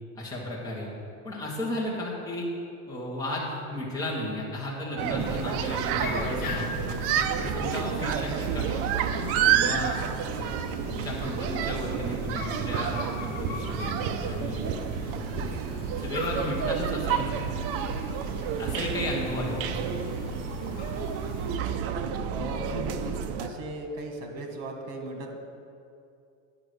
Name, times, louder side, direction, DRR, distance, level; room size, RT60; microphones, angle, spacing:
voice 1, 0.1-0.9 1.2-2.5 2.9-6.9 7.4-8.9 9.5-10.0 10.3-14.6 15.0-15.3 16.0-17.4 18.6-20.1, left 1 dB, 10° left, -5 dB, 1.6 m, -34 dB
sound 1, 5.0-23.5, right 8 dB, 40° right, 0.5 m, -30 dB
sound 2, 5.2-21.6, left 4 dB, 25° left, 0.9 m, -39 dB
voice 2, 22.3-25.4, right 2 dB, 70° right, 3 dB, 1.8 m, -37 dB
9.4 x 5.9 x 6.8 m, 2.6 s
cardioid pair, 160°, 37 cm